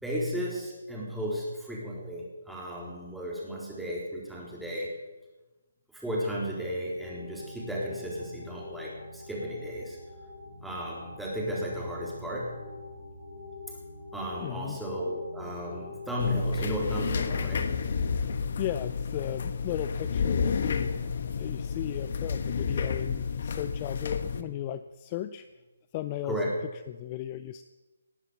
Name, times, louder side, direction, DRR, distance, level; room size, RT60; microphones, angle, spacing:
voice 1, 0.0-4.9 5.9-10.0 10.6-12.6 14.1-17.7 26.2-26.5, equal, ahead, -5 dB, 4.0 m, -34 dB
sound 1, 7.0-16.4, left 3 dB, 75° left, 6.3 m, -44 dB
voice 2, 14.4-14.8 18.6-20.9 21.4-25.5 25.9-26.4 26.9-27.6, left 12 dB, 30° left, 12 dB, 0.5 m, -36 dB
sound 2, 16.2-24.4, left 6 dB, 55° left, 1.3 m, -30 dB
19.0 x 9.6 x 7.1 m, 1.2 s
figure-of-eight pair, 150°, 0 cm